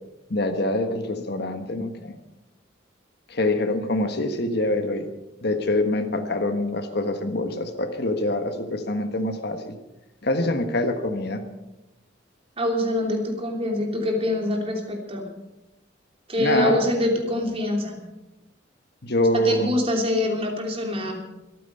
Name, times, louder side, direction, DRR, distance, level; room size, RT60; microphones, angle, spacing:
voice 1, 0.3-2.2 3.3-5.1 5.4-9.7 10.2-11.4 16.4-16.8 19.0-19.7, left 1 dB, 55° left, 7 dB, 1.4 m, -25 dB
voice 2, 12.6-15.3 16.3-18.0 19.3-21.1, left 1 dB, 30° right, 1 dB, 3.0 m, -25 dB
25.0 x 9.3 x 5.5 m, 0.97 s
head